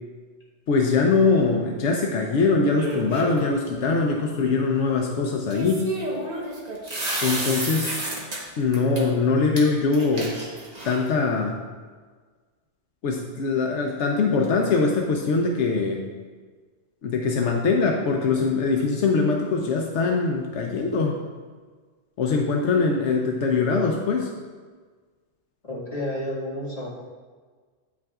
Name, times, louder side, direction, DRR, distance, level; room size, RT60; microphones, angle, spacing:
voice 1, 0.7-5.9 7.2-8.0 8.6-10.4 10.8-11.6 13.0-16.0 17.0-21.1 22.2-24.3, left 4 dB, 80° left, 1 dB, 0.9 m, -22 dB
sound 1, 2.8-3.5 5.5-8.4 8.7-9.0 9.6-9.7 9.9-11.1, right 1 dB, 35° right, 1.1 m, -30 dB
voice 2, 25.7-26.9, left 1 dB, 35° left, -6 dB, 1.8 m, -30 dB
8.7 x 6.0 x 2.4 m, 1.5 s
omnidirectional pair, 1.2 m